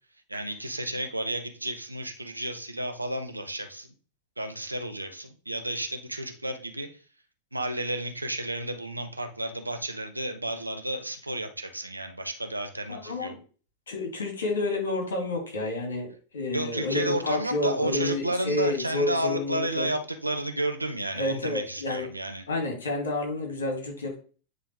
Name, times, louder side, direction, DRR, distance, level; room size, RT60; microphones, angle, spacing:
voice 1, 0.3-3.9 4.4-6.9 7.5-13.3 16.5-22.4, right 1 dB, 85° right, 5 dB, 0.9 m, -32 dB
voice 2, 12.9-13.4 13.9-19.9 21.1-22.1 22.5-24.1, left 2 dB, 65° left, 2 dB, 2.3 m, -30 dB
9.6 x 3.4 x 3.4 m, 0.38 s
figure-of-eight pair, 90°, 0 cm